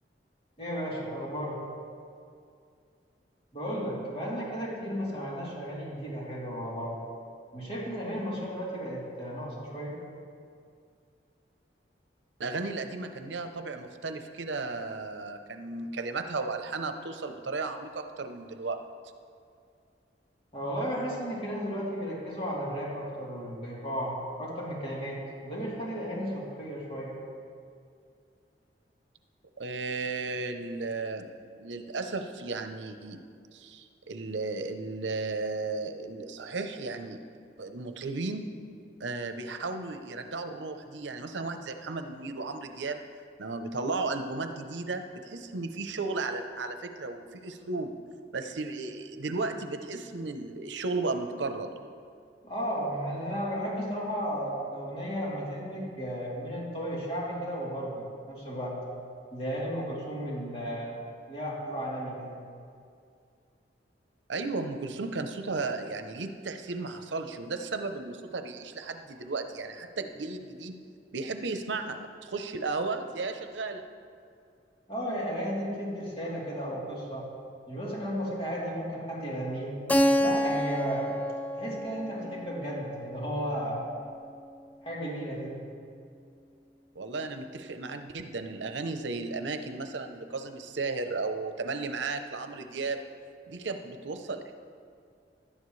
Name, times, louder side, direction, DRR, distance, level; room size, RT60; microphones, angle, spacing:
voice 1, 0.6-1.6 3.5-7.0 7.5-9.9 20.5-27.2 52.4-58.7 59.3-60.9 61.3-62.4 74.9-77.3 77.7-79.8 80.2-81.1 81.6-83.8 84.8-85.6, equal, 35° left, -5 dB, 3.2 m, -34 dB
voice 2, 12.4-18.8 29.6-31.3 31.6-33.2 33.5-37.2 37.6-38.5 39.0-43.0 43.4-47.9 48.3-51.7 64.3-70.8 71.1-73.8 86.9-93.0 93.5-94.5, right 3 dB, 85° right, 7 dB, 0.7 m, -34 dB
Keyboard (musical), 79.9-84.4, equal, 10° left, 0.4 m, -29 dB
16.5 x 11.5 x 3.2 m, 2.3 s
head